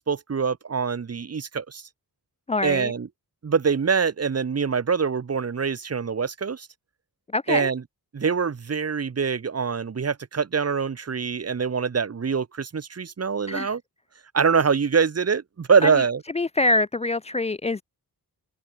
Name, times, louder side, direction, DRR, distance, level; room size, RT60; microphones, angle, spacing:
voice 1, 0.0-1.8 2.6-3.1 3.4-6.7 7.5-7.8 8.1-13.8 14.3-16.2, right 6 dB, 40° right, 1.0 m, -24 dB
voice 2, 2.5-2.9 7.3-7.7 13.5-13.8 15.8-16.0 16.3-17.8, left 2 dB, 15° left, 0.4 m, -25 dB
wide cardioid pair, 95°, 40 cm